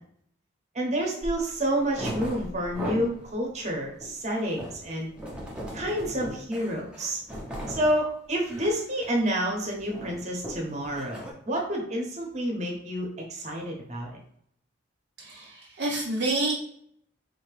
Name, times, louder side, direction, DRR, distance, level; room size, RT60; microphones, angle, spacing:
voice 1, 0.7-5.1 5.7-7.2 7.7-14.1, right 1 dB, 35° right, 0 dB, 0.9 m, -29 dB
Chairs Dragging Across Stone Floor, 1.2-1.4 1.8-3.2 3.6-7.9 8.3-8.8 9.1-9.3 9.6-11.3, equal, 5° right, 0.7 m, -37 dB
voice 2, 15.2-16.5, right 2 dB, 55° right, -3 dB, 0.6 m, -28 dB
4.2 x 2.8 x 3.1 m, 0.69 s
head